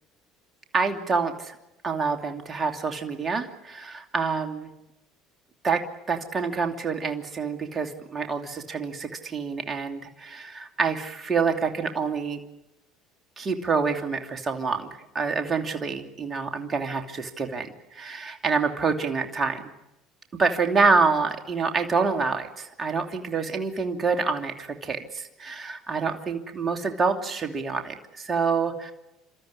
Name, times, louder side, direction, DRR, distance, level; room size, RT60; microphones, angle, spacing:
voice 1, 0.7-1.6 1.8-4.7 5.6-12.4 13.4-14.9 15.1-19.6 20.3-28.9, right 4 dB, 30° right, 5 dB, 2.7 m, -27 dB
29.5 x 13.5 x 9.8 m, 0.93 s
hypercardioid pair, 75°, 0 cm